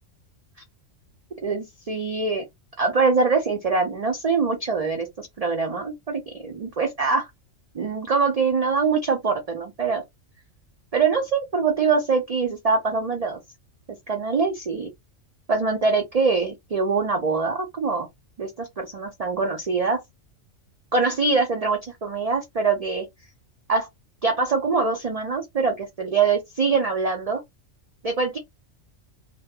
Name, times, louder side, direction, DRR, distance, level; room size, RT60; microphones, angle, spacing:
voice 1, 1.4-2.4 2.8-7.3 7.7-10.0 10.9-13.4 14.1-14.9 15.5-18.1 18.4-20.0 20.9-23.0 23.7-23.9 24.2-27.4 28.0-28.4, right 4 dB, 55° right, 0.4 m, -23 dB
2.1 x 2.0 x 3.4 m
omnidirectional pair, 1.3 m